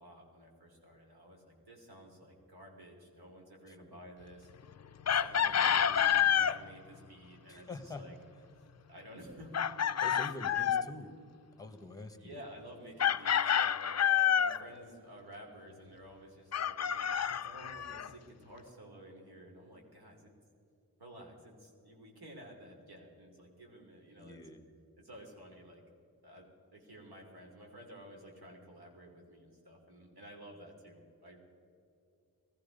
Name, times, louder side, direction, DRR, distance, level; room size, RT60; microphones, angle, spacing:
voice 1, 0.0-4.5 5.0-8.1 8.9-10.7 12.2-20.3 21.0-24.4 25.0-25.8 26.2-26.4 26.7-31.4, equal, 90° right, 0 dB, 3.1 m, -52 dB
voice 2, 3.7-4.0 5.5-5.8 7.5-8.0 10.0-11.1 11.6-12.5 24.2-24.6, left 2 dB, 10° left, 8 dB, 1.3 m, -46 dB
Chicken rooster, 5.1-6.6 9.5-10.9 13.0-14.6 16.5-18.1, left 9 dB, 45° left, 0.4 m, -28 dB
18.5 x 14.5 x 5.3 m, 2.6 s
wide cardioid pair, 100°, 37 cm